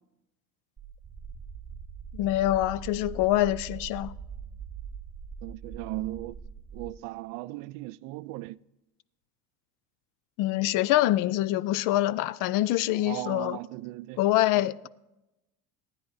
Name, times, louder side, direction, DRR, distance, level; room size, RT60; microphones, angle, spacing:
sound 1, 0.8-6.9, right 6 dB, 20° right, 1.8 m, -42 dB
voice 1, 2.1-4.1 10.4-13.6 14.2-14.9, left 15 dB, 70° left, 0.6 m, -25 dB
voice 2, 5.4-6.4 6.7-8.6 13.0-14.2 14.6-14.7, right 19 dB, 75° right, 0.5 m, -37 dB
25.0 x 10.0 x 2.7 m
cardioid pair, 125°, 33 cm